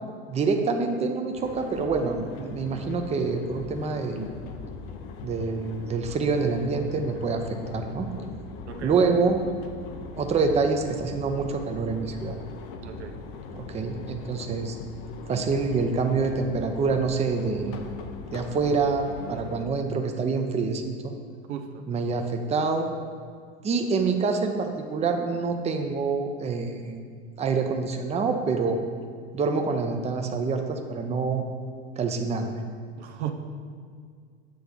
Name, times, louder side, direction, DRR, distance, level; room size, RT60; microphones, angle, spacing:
voice 1, 0.3-4.3 5.2-8.1 8.8-9.4 10.2-12.4 13.5-14.8 15.3-17.8 18.3-21.1 21.9-22.9 23.6-27.0 27.4-28.8 29.3-31.4 32.0-32.6, right 4 dB, 20° right, 4 dB, 0.6 m, -26 dB
sound 1, 1.3-19.6, left 4 dB, 55° left, 0.7 m, -40 dB
voice 2, 8.7-9.2 9.9-10.1 12.8-13.2 21.5-21.9 33.0-33.3, right 9 dB, 85° right, 5 dB, 0.7 m, -36 dB
7.7 x 3.4 x 5.3 m, 2.1 s
hypercardioid pair, 95°, 33 cm